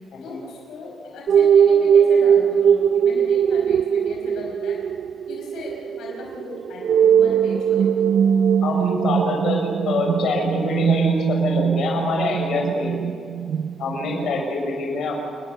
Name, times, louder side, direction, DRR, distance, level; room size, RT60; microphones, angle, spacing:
voice 1, 0.2-4.8 5.3-8.1 12.5-12.9 14.0-14.2, left 3 dB, 75° left, -1 dB, 5.0 m, -38 dB
sound 1, 1.3-14.4, right 8 dB, 55° right, 0.5 m, -20 dB
voice 2, 8.6-13.1 13.8-15.2, left 3 dB, 55° left, 1 dB, 6.0 m, -25 dB
29.0 x 20.5 x 6.8 m, 2.2 s
cardioid pair, 180°, 0 cm